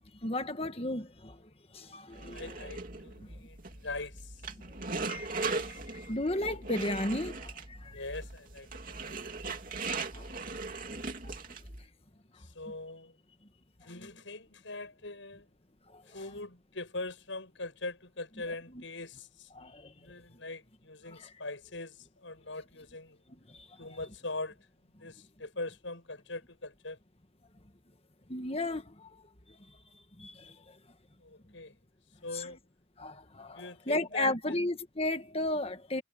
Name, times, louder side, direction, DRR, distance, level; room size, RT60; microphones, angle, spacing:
voice 1, 0.2-1.1 1.9-2.5 5.1-5.4 6.1-7.3 28.3-28.8 32.3-32.4 33.0-33.1 33.4-33.5 33.9-36.0, left 1 dB, 30° left, 1.6 m, -32 dB
sound 1, 2.1-11.8, right 3 dB, 45° right, 2.9 m, -39 dB
voice 2, 2.3-4.4 4.7-5.7 7.9-9.2 12.3-13.2 13.8-15.5 16.1-19.5 19.9-23.2 23.8-24.6 24.8-27.0 31.2-31.7 32.2-32.6 33.5-34.6, left 2 dB, 75° left, 6.9 m, -42 dB
head